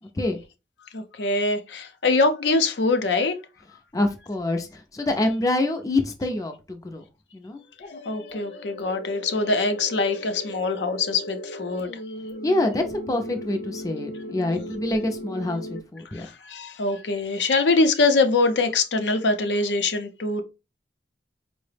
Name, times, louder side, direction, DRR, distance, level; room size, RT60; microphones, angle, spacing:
voice 1, 0.9-3.3 8.0-11.9 14.6-14.7 16.1-20.4, left 3 dB, 80° left, 0.6 m, -23 dB
voice 2, 3.9-7.0 7.3-7.6 12.4-15.6 15.9-16.3, left 2 dB, 20° left, 0.4 m, -26 dB
sound 1, 7.8-15.8, left 1 dB, 55° left, 0.8 m, -37 dB
4.6 x 2.0 x 3.2 m
head